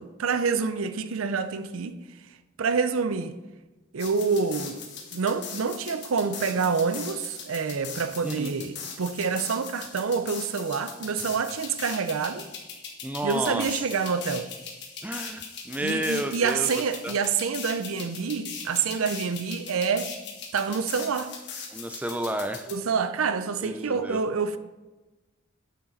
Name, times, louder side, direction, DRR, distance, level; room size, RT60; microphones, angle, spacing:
voice 1, 0.0-2.0 2.6-3.4 3.9-4.8 5.1-12.5 13.2-14.5 15.8-20.1 20.5-21.3 22.7-24.6, right 5 dB, 80° right, 0.5 m, -27 dB
sound 1, 4.0-22.7, left 6 dB, 55° left, 1.5 m, -40 dB
voice 2, 8.2-8.5 13.0-13.7 15.0-16.7 17.0-17.1 21.7-22.7 23.6-24.2, right 1 dB, 5° right, 0.3 m, -31 dB
10.0 x 6.3 x 4.0 m
head